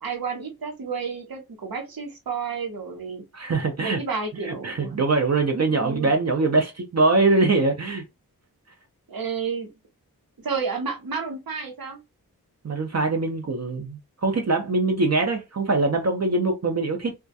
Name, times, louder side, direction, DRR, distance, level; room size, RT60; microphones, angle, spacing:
voice 1, 0.0-3.2 3.8-4.9 5.7-6.1 9.1-9.7 10.4-12.0, right 5 dB, 65° right, 0.9 m, -31 dB
voice 2, 3.3-4.0 4.6-8.0 12.6-17.1, right 3 dB, 45° right, 0.5 m, -23 dB
2.3 x 2.1 x 2.6 m
wide cardioid pair, 70°, 37 cm